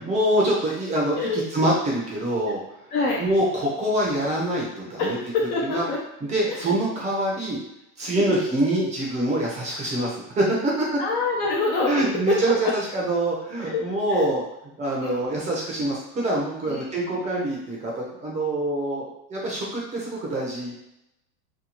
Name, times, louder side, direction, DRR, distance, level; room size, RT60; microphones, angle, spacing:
voice 1, 0.1-2.9 3.2-5.2 5.6-5.8 6.2-7.6 8.0-10.9 11.8-14.4 14.8-20.7, right 1 dB, 15° right, -4 dB, 0.6 m, -25 dB
voice 2, 2.9-3.2 5.0-6.0 6.5-6.7 8.2-8.4 11.0-12.7 13.6-13.8 14.1-14.3 15.0-15.2 16.7-16.8, left 3 dB, 35° left, -2 dB, 0.4 m, -26 dB
2.9 x 2.3 x 4.1 m, 0.85 s
supercardioid pair, 140°, 45 cm